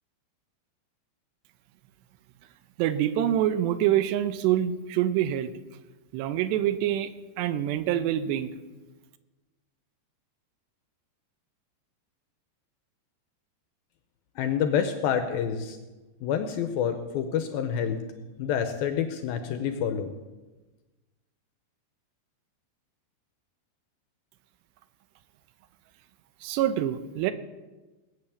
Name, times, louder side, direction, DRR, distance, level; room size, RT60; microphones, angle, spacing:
voice 1, 2.8-5.5 6.1-7.1 7.4-8.5 26.4-27.3, right 11 dB, 80° right, 12 dB, 2.9 m, -25 dB
voice 2, 14.4-15.8 16.2-18.0 18.4-20.1, left 8 dB, 75° left, 8 dB, 2.3 m, -28 dB
19.5 x 8.9 x 7.1 m, 1.2 s
omnidirectional pair, 5.0 m